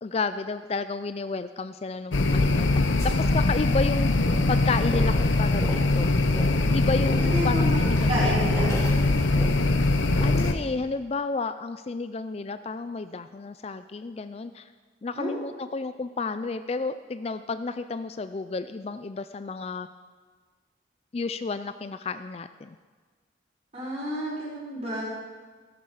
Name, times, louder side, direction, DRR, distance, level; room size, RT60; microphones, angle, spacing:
voice 1, 0.0-4.1 4.5-6.1 6.7-8.4 10.2-14.7 15.0-19.9 21.1-22.8, left 4 dB, 35° left, 11 dB, 0.4 m, -31 dB
sound 1, 2.1-10.5, left 2 dB, 90° left, 0.9 m, -22 dB
sound 2, 3.0-10.7, equal, 15° left, 4.0 m, -40 dB
voice 2, 7.2-7.8 8.1-8.7 15.1-15.4 23.7-25.0, equal, 35° right, -6 dB, 5.4 m, -30 dB
16.0 x 12.5 x 4.9 m, 1.5 s
head